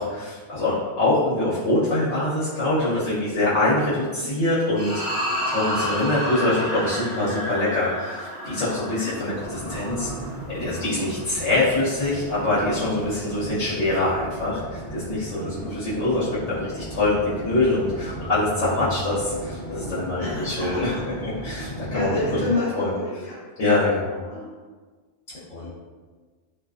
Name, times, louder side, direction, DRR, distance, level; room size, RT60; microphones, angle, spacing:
voice 1, 0.0-10.1 10.5-20.9 21.2-22.5 22.8-22.9 23.6-24.2 25.5-25.7, left 2 dB, 90° left, -9 dB, 1.1 m, -24 dB
sound 1, 4.8-11.3, equal, 35° right, 0.6 m, -31 dB
sound 2, 9.3-22.5, right 1 dB, 45° left, 1.0 m, -36 dB
voice 2, 15.4-16.0 20.2-21.0 21.9-23.4 24.3-24.4 25.6-25.7, left 2 dB, 65° left, -10 dB, 1.1 m, -30 dB
2.5 x 2.3 x 2.3 m, 1.4 s
omnidirectional pair, 1.2 m